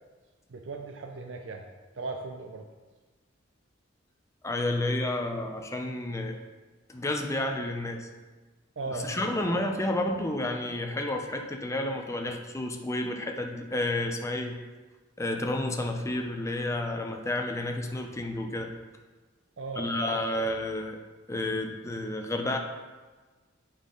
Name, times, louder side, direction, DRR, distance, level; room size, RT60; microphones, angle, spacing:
voice 1, 0.5-1.7 2.0-2.7 8.8-9.7 19.6-20.5, right 3 dB, 70° right, 3 dB, 0.6 m, -38 dB
voice 2, 4.4-6.4 6.9-8.1 8.9-14.6 15.2-18.7 19.8-21.0 21.3-22.6, left 1 dB, 15° left, 3 dB, 0.6 m, -30 dB
8.3 x 5.6 x 3.9 m, 1.3 s
head